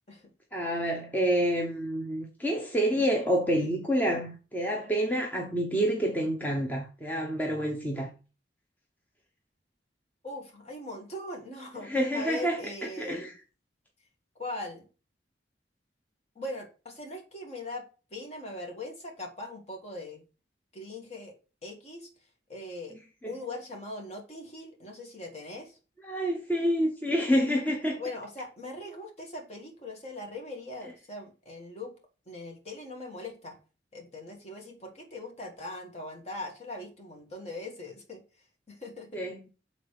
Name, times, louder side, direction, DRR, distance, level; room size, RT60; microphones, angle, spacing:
voice 1, 0.5-8.1 11.8-12.6 13.0-13.3 23.2-23.3 26.0-28.0 39.1-39.4, equal, 10° left, 0.9 m, -28 dB
voice 2, 10.2-13.3 14.4-14.9 16.3-20.2 20.7-21.3 21.6-22.1 22.5-23.0 23.2-25.8 27.9-31.9 32.3-33.6 33.9-38.2 38.7-39.2, left 2 dB, 40° left, 1.8 m, -40 dB
6.5 x 4.0 x 4.9 m
head